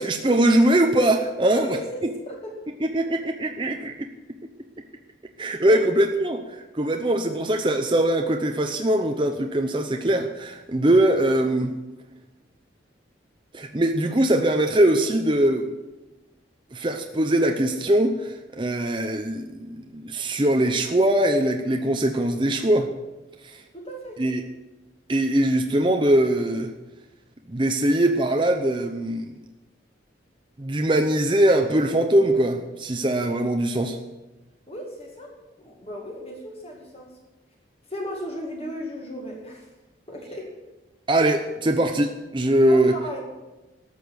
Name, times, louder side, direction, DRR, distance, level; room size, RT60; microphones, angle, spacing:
voice 1, 0.0-1.7 2.8-4.1 5.4-6.4 6.8-11.7 13.5-15.7 16.7-22.9 24.2-24.4 25.1-26.7 27.5-29.3 30.6-34.0 41.1-42.9, right 1 dB, 25° right, 4 dB, 0.7 m, -21 dB
voice 2, 1.5-2.5 5.6-5.9 23.7-24.2 34.7-37.1 37.9-39.7 40.1-40.5 42.7-43.2, left 1 dB, 30° left, 0 dB, 2.2 m, -35 dB
13.0 x 6.8 x 9.5 m, 1.1 s
head